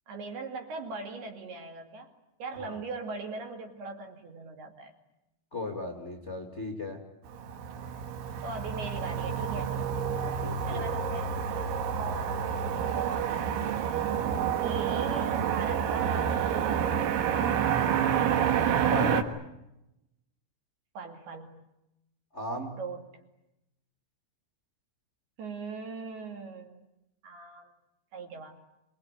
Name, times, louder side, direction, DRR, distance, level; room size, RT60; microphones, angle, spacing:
voice 1, 0.1-2.1 2.4-4.9 8.4-9.8 10.7-11.3 12.0-13.8 14.6-17.0 21.0-21.6 22.8-23.0 25.4-26.8 27.2-27.7 28.1-28.6, right 4 dB, 55° right, 4 dB, 4.1 m, -40 dB
voice 2, 5.5-7.0 10.1-10.8 14.2-14.5 18.9-19.2 22.3-22.8, left 1 dB, 75° left, 1 dB, 0.6 m, -36 dB
Motor vehicle (road), 7.3-19.2, right 8 dB, 75° right, 3.7 m, -28 dB
26.5 x 21.5 x 9.7 m, 0.90 s
omnidirectional pair, 5.9 m